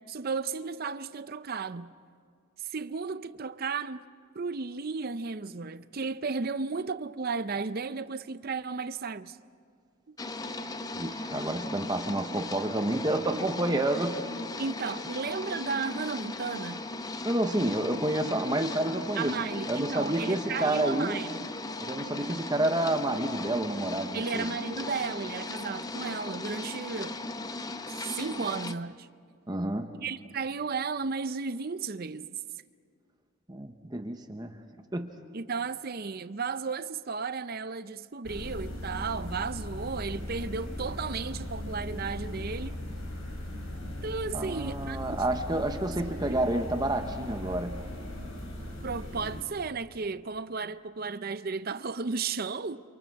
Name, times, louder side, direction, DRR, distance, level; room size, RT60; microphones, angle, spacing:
voice 1, 0.1-1.9 2.6-4.1 4.3-9.4 10.1-10.2 14.6-16.8 19.1-21.4 24.1-27.2 27.9-29.1 29.9-32.3 35.3-42.7 44.0-45.2 46.3-46.5 48.8-52.8, right 4 dB, 45° right, 0.6 m, -34 dB
sound 1, 10.2-28.8, left 2 dB, 15° left, 0.6 m, -37 dB
voice 2, 10.9-14.3 17.2-19.4 19.7-21.2 21.8-24.5 29.5-29.9 33.5-34.6 34.9-35.1 44.3-47.8, right 1 dB, 20° right, 1.0 m, -29 dB
sound 2, 38.2-49.4, left 1 dB, 80° left, 4.8 m, -38 dB
29.0 x 27.5 x 4.7 m
head